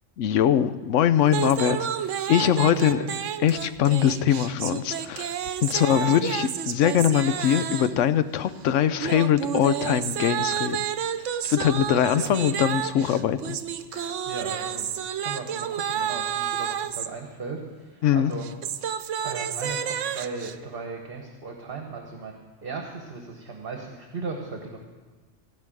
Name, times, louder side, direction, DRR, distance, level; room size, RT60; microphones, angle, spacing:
voice 1, 0.2-1.8 2.3-3.0 3.4-5.3 5.6-10.9 11.4-13.6 13.9-14.1 18.0-18.3, left 10 dB, 85° left, 13 dB, 1.0 m, -22 dB
sound 1, 1.3-8.0 9.0-17.1 18.3-20.5, right 9 dB, 80° right, 1.0 m, -30 dB
voice 2, 2.5-3.1 5.7-6.2 11.9-12.4 14.3-18.5 19.2-24.8, right 4 dB, 50° right, 2 dB, 1.4 m, -37 dB
16.5 x 5.5 x 9.0 m, 1.3 s
omnidirectional pair, 1.2 m